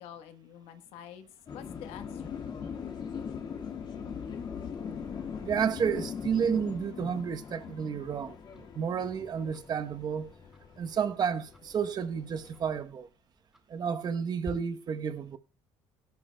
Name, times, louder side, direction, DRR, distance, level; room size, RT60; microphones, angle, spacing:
voice 1, 0.0-2.4, left 10 dB, 75° left, 1.2 m, -47 dB
sound 1, 1.5-12.8, left 7 dB, 45° left, 1.9 m, -41 dB
voice 2, 5.4-10.3 10.8-13.1 13.7-15.4, right 7 dB, 45° right, 0.9 m, -31 dB
Tick-tock, 6.2-14.5, left 1 dB, 5° right, 4.8 m, -55 dB
17.0 x 11.5 x 2.2 m
supercardioid pair, 95°, 10 cm